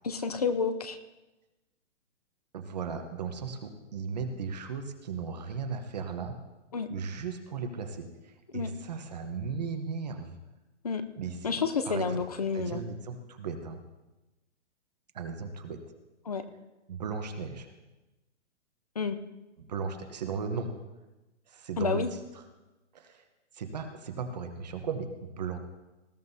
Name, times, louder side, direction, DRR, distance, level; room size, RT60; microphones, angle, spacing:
voice 1, 0.0-1.0 6.7-6.9 8.5-8.7 10.8-11.0 11.4-12.8 16.3-16.4 19.0-19.2 21.8-22.1, left 5 dB, 35° left, 10 dB, 0.5 m, -29 dB
voice 2, 2.5-6.4 6.9-10.3 11.2-12.2 12.5-13.8 15.1-15.8 16.9-17.7 19.7-20.7 21.5-22.0 22.9-23.2 23.5-25.6, right 5 dB, 35° right, 6 dB, 1.0 m, -36 dB
19.5 x 13.5 x 2.8 m, 1.1 s
hypercardioid pair, 180°, 36 cm